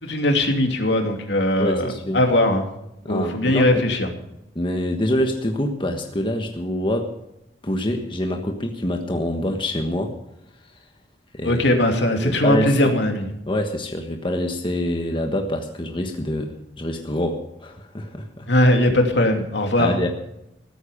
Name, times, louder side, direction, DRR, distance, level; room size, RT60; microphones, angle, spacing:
voice 1, 0.0-2.6 3.1-4.1 11.4-13.3 18.5-20.0, left 1 dB, 70° left, 4 dB, 2.8 m, -20 dB
voice 2, 1.6-2.2 3.0-3.8 4.5-7.2 7.6-10.2 11.3-11.6 12.2-12.9 13.5-18.5 19.8-20.1, left 1 dB, 25° left, 4 dB, 1.4 m, -25 dB
15.0 x 14.0 x 5.1 m, 0.85 s
head